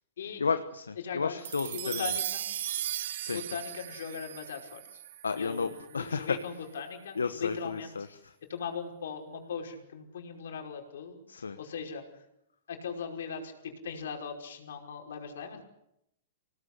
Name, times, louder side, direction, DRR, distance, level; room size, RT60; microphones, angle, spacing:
voice 1, 0.4-2.1 3.2-3.4 5.2-6.3 7.1-8.3 11.3-11.6, left 5 dB, 90° left, 9 dB, 1.2 m, -32 dB
voice 2, 1.0-1.4 1.7-2.5 3.3-5.0 5.4-8.1 8.5-12.0 12.7-15.6, left 6 dB, 70° left, 3 dB, 5.3 m, -39 dB
sound 1, 1.4-6.0, right 12 dB, 60° right, 1.5 m, -37 dB
26.5 x 18.5 x 8.1 m, 0.81 s
hypercardioid pair, 115°, 0 cm